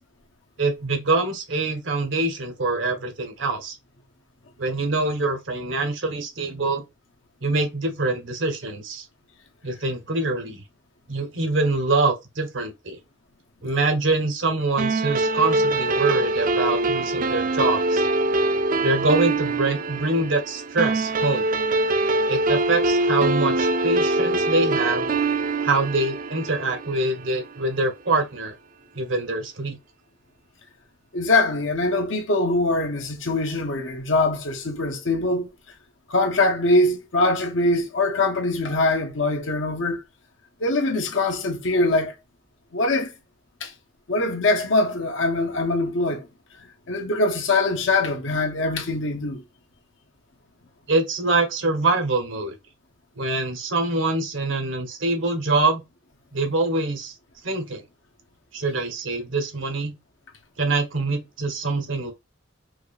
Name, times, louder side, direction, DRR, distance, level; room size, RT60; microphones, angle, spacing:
voice 1, 0.6-3.8 4.6-6.8 7.4-9.0 9.6-10.6 11.1-13.0 13.6-18.1 18.8-21.5 22.3-25.1 25.6-28.5 28.9-29.8 50.9-52.5 53.2-55.8 56.3-57.1 57.4-57.8 58.5-59.9 60.6-62.1, right 2 dB, 85° right, 1.2 m, -24 dB
sound 1, 14.8-27.5, right 2 dB, 45° right, 0.4 m, -23 dB
voice 2, 31.1-35.5 36.1-40.0 40.6-42.1 42.7-43.1 43.6-43.7 44.1-46.3 46.6-49.4, left 2 dB, 80° left, 1.0 m, -23 dB
4.8 x 2.4 x 2.5 m
head